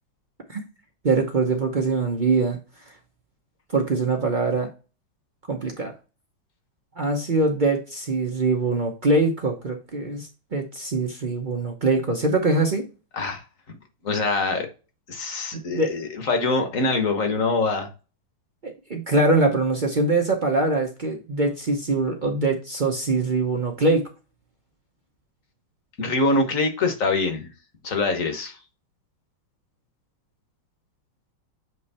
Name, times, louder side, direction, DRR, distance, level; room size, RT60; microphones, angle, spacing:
voice 1, 1.0-2.6 3.7-4.7 5.5-5.9 7.0-12.9 15.5-15.9 18.6-24.1, right 3 dB, 60° right, 2 dB, 0.5 m, -23 dB
voice 2, 14.0-14.7 15.1-17.9 26.0-27.5 27.8-28.6, left 3 dB, 45° left, 6 dB, 1.4 m, -24 dB
7.9 x 3.2 x 4.2 m, 0.33 s
omnidirectional pair, 2.2 m